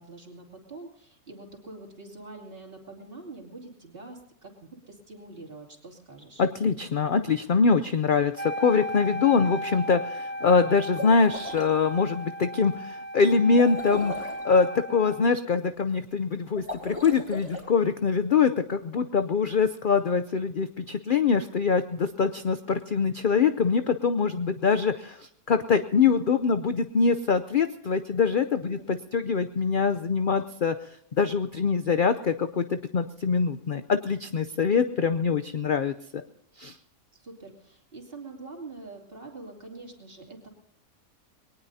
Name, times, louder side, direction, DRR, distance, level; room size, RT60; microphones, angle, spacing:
voice 1, 0.0-6.4 28.6-28.8 37.1-40.5, right 3 dB, 40° right, 0 dB, 3.1 m, -45 dB
voice 2, 6.4-36.2 36.6-36.8, left 5 dB, 55° left, 10 dB, 0.6 m, -24 dB
Wind instrument woodwind instrument, 8.4-15.3, equal, 15° left, 0.3 m, -35 dB
sound 1, 10.8-11.7 13.5-14.4 16.5-17.6, left 1 dB, 10° right, 4.3 m, -37 dB
22.0 x 19.0 x 2.8 m, 0.74 s
omnidirectional pair, 1.5 m